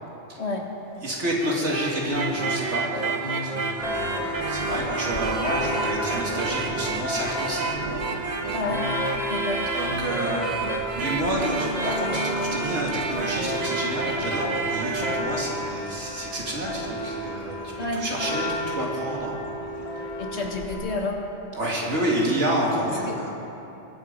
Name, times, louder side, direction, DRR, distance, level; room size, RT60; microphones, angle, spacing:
voice 1, 1.0-8.0 9.7-19.3 21.5-23.3, right 1 dB, 75° right, -3 dB, 2.5 m, -29 dB
sound 1, 1.2-15.2, right 3 dB, 40° right, 1.0 m, -29 dB
Church bell, 3.8-20.8, left 1 dB, 55° left, 2.0 m, -33 dB
sound 2, 8.1-8.2 9.1-19.2, right 1 dB, 20° left, 2.9 m, -41 dB
voice 2, 8.5-8.8 9.3-9.6 17.8-18.0 20.2-21.2 23.1-23.3, left 3 dB, 70° left, 1 dB, 1.8 m, -29 dB
21.0 x 8.0 x 5.3 m, 2.9 s
omnidirectional pair, 1.2 m